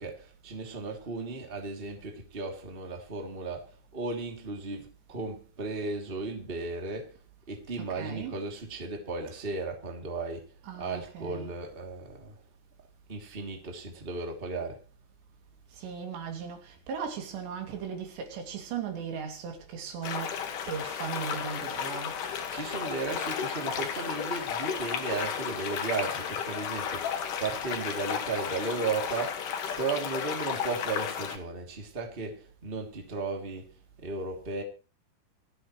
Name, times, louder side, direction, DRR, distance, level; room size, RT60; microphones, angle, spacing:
voice 1, 0.0-7.2 7.5-10.5 10.8-12.4 13.1-14.8 22.3-29.5 29.8-33.7 34.0-34.6, right 3 dB, 15° right, 2.4 m, -35 dB
voice 2, 7.8-8.5 10.6-11.6 15.7-20.4 20.7-22.2, right 7 dB, 90° right, 4.9 m, -37 dB
sound 1, 20.0-31.4, left 7 dB, 60° left, 3.0 m, -33 dB
26.5 x 9.5 x 3.2 m
omnidirectional pair, 4.8 m